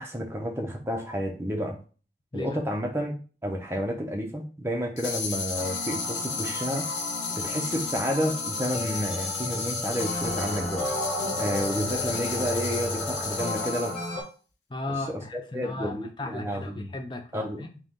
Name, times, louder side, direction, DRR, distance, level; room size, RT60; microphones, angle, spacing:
voice 1, 0.0-1.8 2.3-6.9 7.4-10.9 11.4-14.0 15.3-16.9 17.3-17.6, equal, 15° right, 0.7 m, -30 dB
sound 1, 5.0-14.1, left 5 dB, 85° left, 1.0 m, -33 dB
sound 2, 5.5-14.2, left 1 dB, ahead, 2.0 m, -34 dB
voice 2, 14.7-17.8, left 2 dB, 25° left, 0.6 m, -36 dB
3.9 x 2.9 x 3.6 m
head